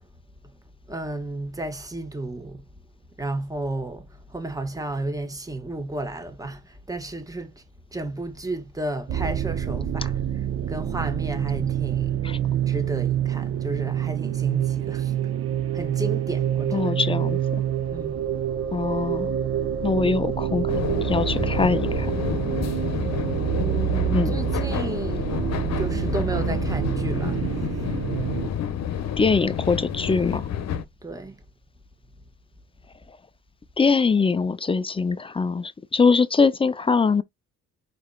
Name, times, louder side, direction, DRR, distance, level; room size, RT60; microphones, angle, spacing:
voice 1, 0.9-2.7 3.2-7.6 7.9-12.2 12.7-15.1 15.7-17.1 17.9-18.2 23.6-27.4 27.7-27.8 31.0-31.3, right 2 dB, 10° right, 1.3 m, -33 dB
sound 1, 9.1-28.5, right 10 dB, 50° right, 0.7 m, -26 dB
voice 2, 16.7-17.4 18.7-19.3 19.8-22.2 24.1-24.3 29.2-30.5 33.8-37.2, left 4 dB, 20° left, 0.4 m, -22 dB
sound 2, 20.7-30.8, left 9 dB, 60° left, 0.9 m, -29 dB
4.8 x 4.1 x 2.3 m
cardioid pair, 90°, 30 cm